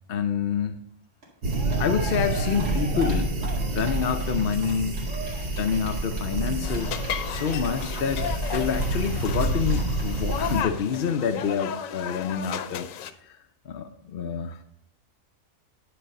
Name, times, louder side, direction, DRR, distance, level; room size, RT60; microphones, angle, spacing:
voice 1, 0.1-0.8 1.8-3.3 3.7-12.9 13.2-13.4 13.7-14.6, left 7 dB, 55° left, 7 dB, 0.7 m, -28 dB
Cheering, 1.2-1.3 1.5-10.6 10.9-11.0 11.2-11.3, right 2 dB, 65° right, 2.5 m, -39 dB
sound 1, 1.4-10.6, right 2 dB, 50° right, 1.2 m, -28 dB
sound 2, 6.6-13.1, left 9 dB, 90° left, 1.0 m, -34 dB
10.0 x 4.9 x 5.3 m, 0.74 s
omnidirectional pair, 1.3 m